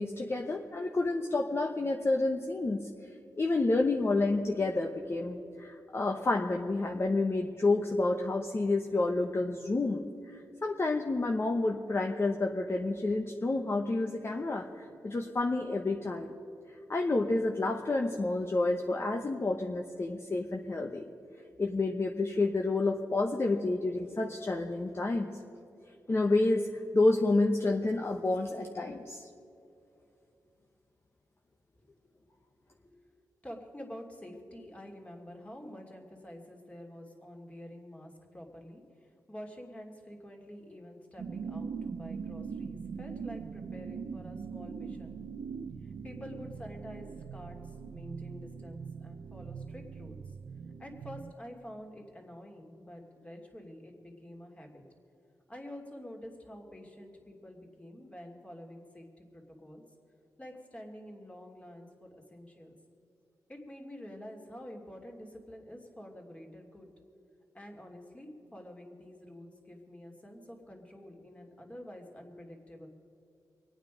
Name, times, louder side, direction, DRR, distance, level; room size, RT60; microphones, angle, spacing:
voice 1, 0.0-2.9 3.4-16.4 16.9-21.1 21.6-25.3 26.1-26.7 26.9-29.3, left 2 dB, 35° left, 2 dB, 1.0 m, -29 dB
voice 2, 31.7-32.3 32.7-33.0 33.4-45.2 45.8-50.2 50.8-54.8 55.5-59.8 60.4-62.7 63.5-66.9 67.5-72.9, equal, 15° left, 1 dB, 2.6 m, -48 dB
sound 1, 41.2-51.3, right 6 dB, 65° right, 0.6 m, -41 dB
24.5 x 9.0 x 5.1 m, 2.7 s
cardioid pair, 80°, 7 cm